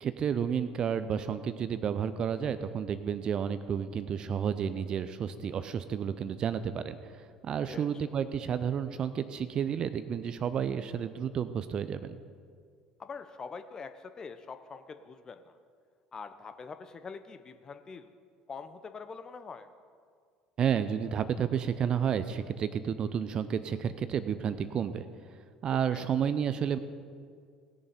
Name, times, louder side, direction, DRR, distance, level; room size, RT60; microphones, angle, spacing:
voice 1, 0.0-7.0 7.4-12.2 20.6-25.0 25.6-26.8, right 8 dB, 40° right, 12 dB, 0.7 m, -31 dB
voice 2, 7.7-8.0 13.0-15.6 16.1-18.1 18.5-19.7 25.9-26.1, left 5 dB, 30° left, 9 dB, 0.9 m, -44 dB
19.0 x 6.9 x 5.2 m, 2.1 s
figure-of-eight pair, 60°, 2 cm